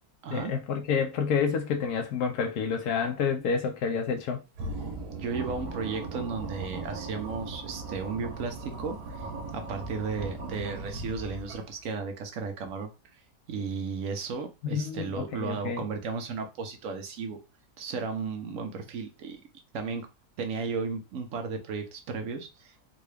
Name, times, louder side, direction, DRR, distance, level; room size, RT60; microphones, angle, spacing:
voice 1, 0.3-4.4 14.6-15.8, left 6 dB, 90° left, 1.2 m, -29 dB
sound 1, 4.6-11.8, right 3 dB, 90° right, 1.4 m, -38 dB
voice 2, 5.1-9.2 9.5-12.9 13.5-17.4 17.8-19.4 19.7-20.1 20.4-22.7, right 5 dB, 65° right, 1.1 m, -34 dB
3.8 x 2.3 x 3.2 m
omnidirectional pair, 1.6 m